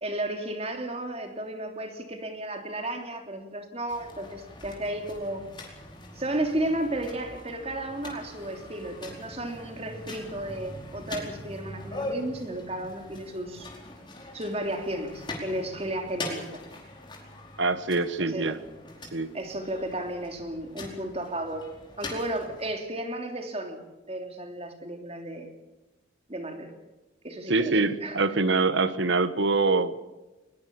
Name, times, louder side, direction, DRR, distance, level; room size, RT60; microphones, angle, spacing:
voice 1, 0.0-5.5 6.1-13.7 14.3-16.6 18.2-18.5 19.3-21.6 22.0-23.8 24.1-25.5 26.3-26.7 27.2-28.2, right 1 dB, 30° right, 5 dB, 3.1 m, -33 dB
sound 1, 3.9-22.7, left 2 dB, 25° left, 4.8 m, -42 dB
voice 2, 17.6-18.6 19.1-19.3 27.5-30.0, right 3 dB, 70° right, 13 dB, 1.4 m, -24 dB
21.5 x 21.0 x 7.1 m, 1.1 s
head